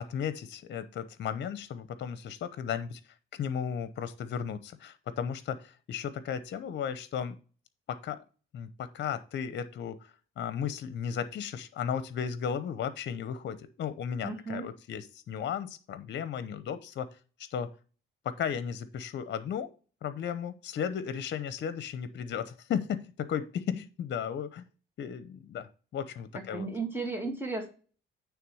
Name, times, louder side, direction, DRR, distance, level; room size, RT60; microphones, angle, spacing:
voice 1, 0.0-3.0 3.3-7.4 7.9-8.2 8.5-10.0 10.4-17.1 17.4-17.7 18.2-19.7 20.0-24.6 25.0-26.7, left 8 dB, 60° left, 13 dB, 0.8 m, -35 dB
voice 2, 14.2-14.7 26.3-27.7, right 3 dB, 10° right, 2 dB, 2.2 m, -35 dB
9.3 x 3.5 x 6.2 m, 0.37 s
cardioid pair, 90°, 20 cm